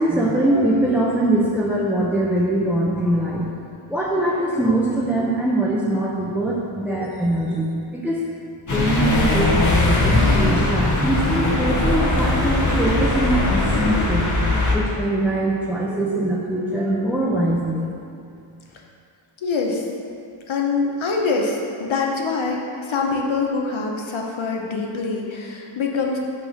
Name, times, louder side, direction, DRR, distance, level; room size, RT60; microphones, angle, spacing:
voice 1, 0.0-3.5 3.9-8.2 8.7-14.4 14.7-17.9, right 1 dB, 5° right, -6 dB, 0.7 m, -22 dB
sound 1, 8.7-14.8, left 2 dB, 35° left, 1.0 m, -20 dB
voice 2, 19.4-19.8 20.5-26.2, left 4 dB, 70° left, 0 dB, 1.0 m, -24 dB
5.8 x 4.0 x 5.9 m, 2.4 s
wide cardioid pair, 85°, 50 cm